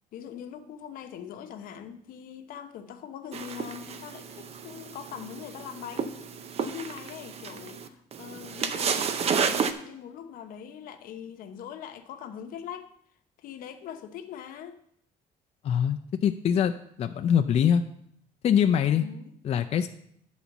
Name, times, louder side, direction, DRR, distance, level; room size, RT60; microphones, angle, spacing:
voice 1, 0.1-6.2 6.6-12.9 13.4-14.8 18.9-19.3, left 9 dB, 80° left, 0.9 m, -42 dB
sound 1, 3.3-9.7, right 6 dB, 45° right, 0.7 m, -31 dB
voice 2, 15.6-16.7 17.0-17.8 18.4-19.0 19.4-19.9, left 8 dB, 45° left, 0.5 m, -23 dB
10.0 x 4.1 x 7.1 m
cardioid pair, 125°, 14 cm